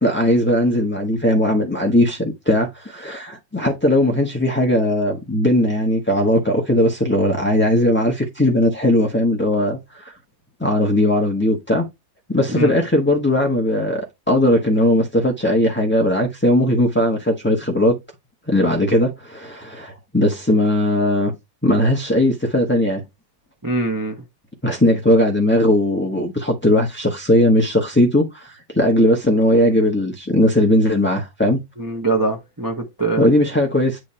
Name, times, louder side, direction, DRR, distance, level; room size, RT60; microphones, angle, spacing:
voice 1, 0.0-10.1 10.6-11.9 12.3-18.0 18.5-21.3 21.6-23.0 24.6-31.6 33.2-34.0, left 1 dB, 10° left, 0.8 m, -18 dB
voice 2, 23.6-24.1 31.8-33.3, right 3 dB, 20° right, 0.6 m, -23 dB
9.0 x 3.4 x 4.3 m
omnidirectional pair, 2.0 m